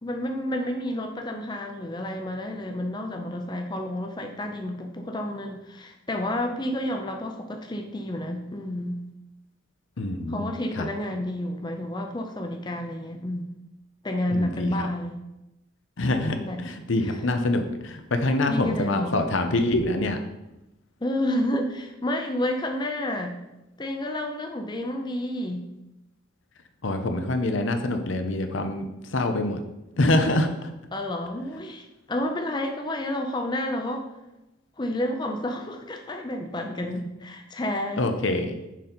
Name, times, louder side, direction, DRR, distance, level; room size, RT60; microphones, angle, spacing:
voice 1, 0.0-9.0 10.3-13.5 14.0-15.2 16.4-16.7 17.0-17.2 18.5-19.2 21.0-23.4 23.8-25.7 30.9-34.0 34.8-38.1, left 1 dB, 20° left, 3 dB, 0.5 m, -30 dB
voice 2, 10.0-10.5 10.8-10.9 14.3-14.9 16.0-20.2 26.8-29.6 30.0-30.7 37.0-37.1 38.0-38.5, left 2 dB, 70° left, 6 dB, 0.7 m, -25 dB
6.3 x 5.4 x 4.3 m, 0.95 s
head